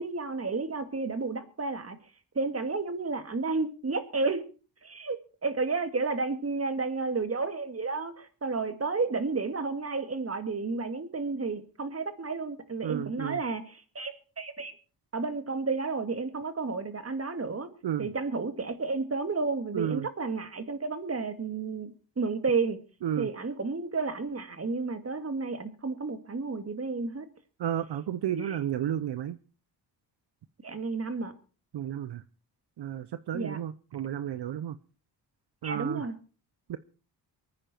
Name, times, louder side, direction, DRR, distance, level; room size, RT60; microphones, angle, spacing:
voice 1, 0.0-2.0 2.3-4.4 4.8-14.7 15.1-17.7 18.0-22.8 23.2-27.3 28.3-28.6 30.6-31.3 33.3-33.6 35.6-36.2, right 4 dB, 30° right, 9 dB, 2.3 m, -32 dB
voice 2, 12.8-13.4 17.8-18.1 19.7-20.1 23.0-23.3 27.6-29.4 31.7-32.2 32.8-34.8 35.6-36.0 36.7-36.8, right 10 dB, 65° right, 13 dB, 0.8 m, -32 dB
24.0 x 9.8 x 4.5 m, 0.37 s
cardioid pair, 80°, 44 cm